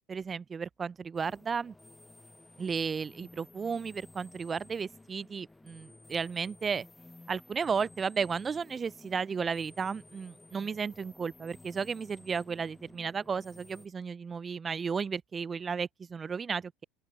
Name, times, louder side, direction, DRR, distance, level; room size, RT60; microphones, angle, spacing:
voice 1, 0.0-1.7 2.6-6.9 7.3-16.8, right 5 dB, 30° right, 0.4 m, -34 dB
sound 1, 1.1-13.9, left 2 dB, 10° left, 0.7 m, -55 dB
open air
hypercardioid pair, 70°, 0 cm